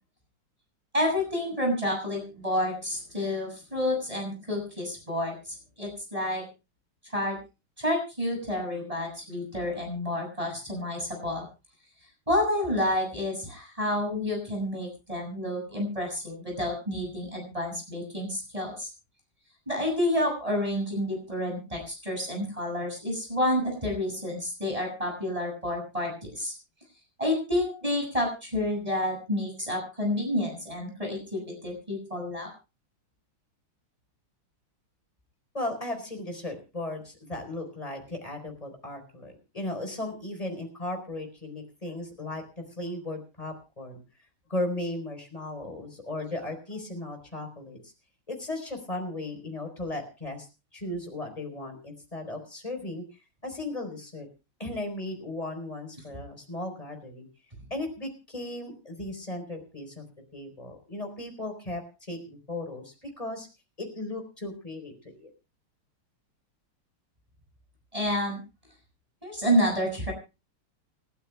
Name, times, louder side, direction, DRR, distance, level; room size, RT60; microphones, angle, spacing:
voice 1, 0.9-6.4 7.1-7.4 7.8-11.5 12.3-18.9 19.7-26.5 27.2-32.5 67.9-68.4 69.2-70.1, left 1 dB, 15° right, 0 dB, 7.0 m, -29 dB
voice 2, 35.5-44.0 44.5-47.9 48.3-54.3 54.6-57.3 57.7-60.0 60.3-63.5 63.8-65.3, left 2 dB, 15° left, 4 dB, 4.5 m, -36 dB
30.0 x 12.5 x 2.3 m, 0.30 s
omnidirectional pair, 2.3 m